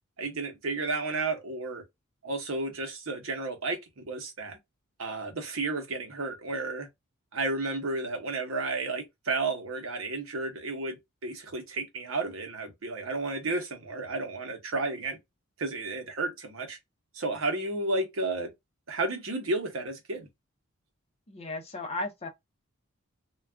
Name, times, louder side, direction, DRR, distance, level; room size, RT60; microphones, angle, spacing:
voice 1, 0.2-1.8 2.2-4.6 5.0-6.9 7.3-11.0 11.2-15.2 15.6-16.8 17.1-18.5 18.9-20.3, right 3 dB, 70° right, 0.9 m, -32 dB
voice 2, 21.3-22.3, left 2 dB, 30° left, 0.7 m, -35 dB
2.4 x 2.2 x 3.4 m
head